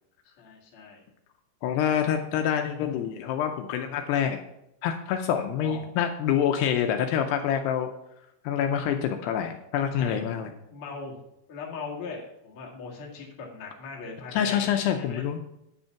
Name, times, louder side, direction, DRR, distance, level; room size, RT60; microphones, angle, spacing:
voice 1, 0.2-1.0 5.6-5.9 9.9-11.2 11.5-15.3, left 4 dB, 45° left, -2 dB, 1.8 m, -40 dB
voice 2, 1.6-4.4 4.8-7.9 8.4-10.5 14.3-15.4, left 9 dB, 80° left, 5 dB, 2.6 m, -26 dB
9.6 x 5.4 x 5.7 m, 0.82 s
omnidirectional pair, 5.0 m